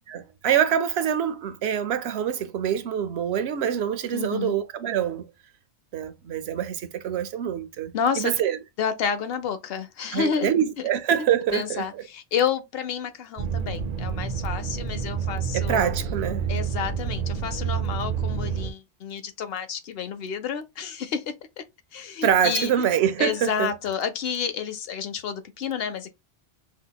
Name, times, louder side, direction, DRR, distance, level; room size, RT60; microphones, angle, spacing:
voice 1, 0.1-5.3 5.9-8.6 10.1-12.0 15.5-16.4 22.2-23.7, right 9 dB, 75° right, 0.8 m, -25 dB
voice 2, 4.1-4.5 7.9-8.4 8.8-10.6 11.5-15.9 16.5-21.6 21.9-22.7 23.2-26.1, left 7 dB, 70° left, 0.8 m, -30 dB
sound 1, 13.4-18.7, right 7 dB, 50° right, 0.5 m, -28 dB
5.4 x 2.1 x 2.2 m
omnidirectional pair, 1.1 m